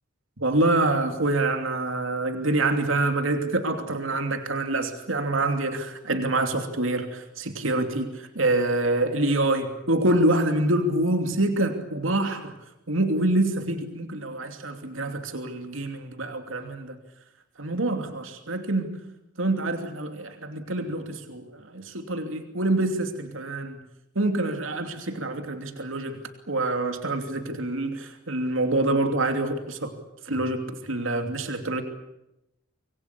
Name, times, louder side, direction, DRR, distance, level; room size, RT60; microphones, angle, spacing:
voice 1, 0.4-12.5 12.9-17.0 17.6-19.0 19.4-23.8 24.1-26.2 26.5-29.9 30.3-31.8, right 2 dB, 75° right, 6 dB, 2.9 m, -26 dB
26.5 x 21.5 x 8.5 m, 0.87 s
head